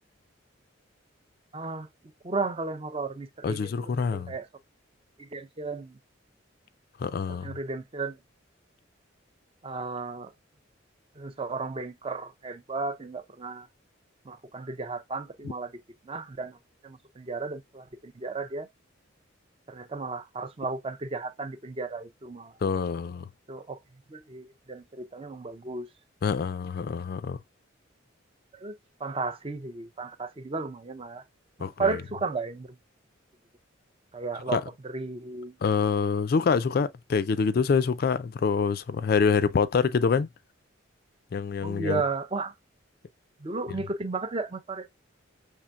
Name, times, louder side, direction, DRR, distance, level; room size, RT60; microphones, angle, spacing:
voice 1, 1.5-1.9 2.2-4.5 5.2-6.0 7.4-8.2 9.6-10.3 11.2-13.7 14.2-15.7 16.1-16.6 16.8-18.7 19.7-22.5 23.5-23.8 24.1-25.9 28.5-28.7 29.0-31.2 31.6-32.7 34.1-35.5 41.6-42.5 43.4-45.0, right 3 dB, 25° right, 0.5 m, -34 dB
voice 2, 3.4-4.3 7.0-7.5 22.6-23.2 26.2-27.4 31.6-32.0 34.5-34.6 35.6-40.3 41.3-42.0, left 5 dB, 50° left, 0.3 m, -26 dB
5.6 x 3.4 x 2.3 m
head